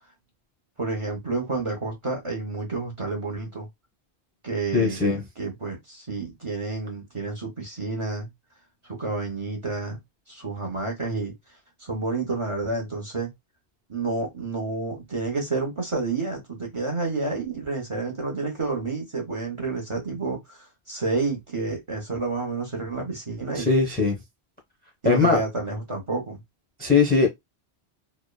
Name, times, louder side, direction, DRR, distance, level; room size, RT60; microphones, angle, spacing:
voice 1, 0.8-3.7 4.4-5.0 5.4-8.3 9.0-10.0 10.3-11.3 11.8-13.3 13.9-20.6 20.9-23.7 25.0-26.4, right 3 dB, 35° right, 0.6 m, -29 dB
voice 2, 4.7-5.2 23.5-24.2 25.0-25.4 26.8-27.3, left 4 dB, 15° left, 0.4 m, -20 dB
2.9 x 2.1 x 2.2 m
omnidirectional pair, 1.1 m